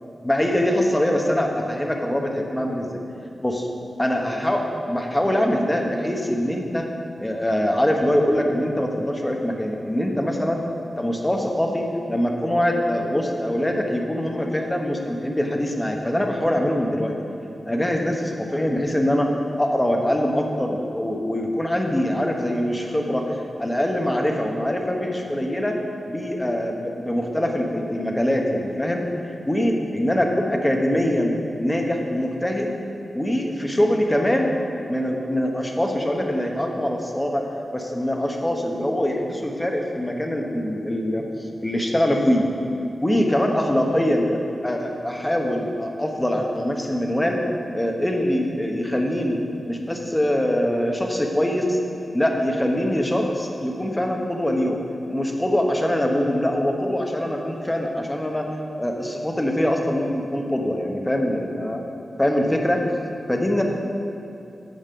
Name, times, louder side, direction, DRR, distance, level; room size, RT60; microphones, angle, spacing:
voice 1, 0.2-3.0 3.4-3.7 4.0-6.9 7.2-10.6 11.0-17.1 17.7-25.8 26.1-32.7 33.1-34.5 34.9-37.4 37.7-41.2 41.6-42.5 43.0-47.4 47.7-49.4 49.6-51.8 52.1-54.8 55.1-61.8 62.2-62.8 63.3-63.6, left 1 dB, 10° left, 2 dB, 0.9 m, -23 dB
9.1 x 7.1 x 6.8 m, 2.8 s
wide cardioid pair, 175°, 0 cm